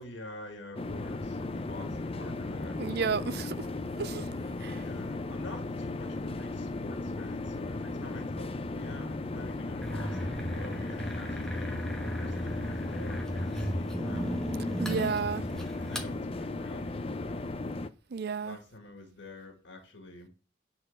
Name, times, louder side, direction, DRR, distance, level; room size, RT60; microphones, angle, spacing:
voice 1, 0.0-2.8 4.7-15.1 15.9-17.7 18.4-20.3, left 2 dB, 60° left, 1.8 m, -47 dB
sound 1, 0.7-17.9, left 2 dB, 30° left, 0.5 m, -36 dB
voice 2, 2.8-3.6 4.0-4.3 4.6-4.8 14.8-15.4 18.1-18.6, right 5 dB, 50° right, 0.5 m, -32 dB
sound 2, 9.8-16.1, equal, 5° left, 1.1 m, -35 dB
9.3 x 4.2 x 6.6 m
head